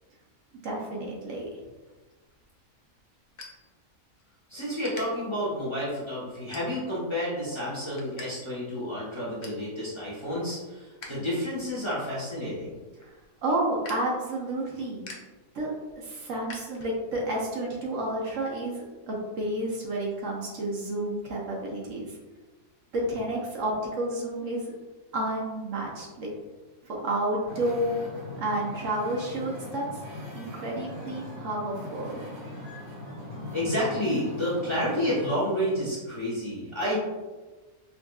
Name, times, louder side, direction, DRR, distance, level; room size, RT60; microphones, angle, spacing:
voice 1, 0.5-1.5 13.0-13.1 13.4-15.1 15.5-22.2 22.9-24.7 25.1-26.3 26.9-27.9 28.4-30.0 30.3-32.2, right 1 dB, 65° right, -3 dB, 1.1 m, -30 dB
sound 1, 2.2-4.3 4.8-5.0 5.6-5.8 6.5-7.1 7.5-8.3 8.6-8.7 9.0-9.7 10.1-11.2 11.5-17.2, left 3 dB, 55° left, 0.5 m, -47 dB
voice 2, 4.5-12.8 33.5-37.0, equal, 25° left, -8 dB, 0.9 m, -30 dB
Wind / Ocean, 27.4-35.3, left 1 dB, 25° right, 0.9 m, -40 dB
5.2 x 2.5 x 2.3 m, 1.3 s
omnidirectional pair, 1.5 m